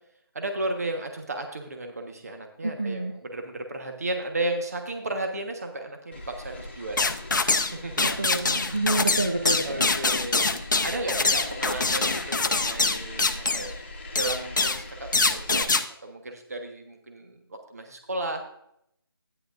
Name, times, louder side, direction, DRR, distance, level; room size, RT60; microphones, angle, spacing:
voice 1, 0.3-7.1 7.7-8.4 9.6-10.5 10.8-13.7 14.1-15.7 16.0-18.4, right 2 dB, 40° right, 4 dB, 1.3 m, -34 dB
voice 2, 2.6-3.1 8.0-9.9, right 2 dB, 25° right, 2 dB, 0.5 m, -28 dB
sound 1, 6.1-15.6, left 2 dB, 30° left, 1.3 m, -40 dB
sound 2, 7.0-7.7 8.0-13.7 14.1-14.8 15.1-15.8, left 3 dB, 50° left, 0.7 m, -24 dB
11.0 x 10.0 x 2.6 m, 0.74 s
figure-of-eight pair, 175°, 13 cm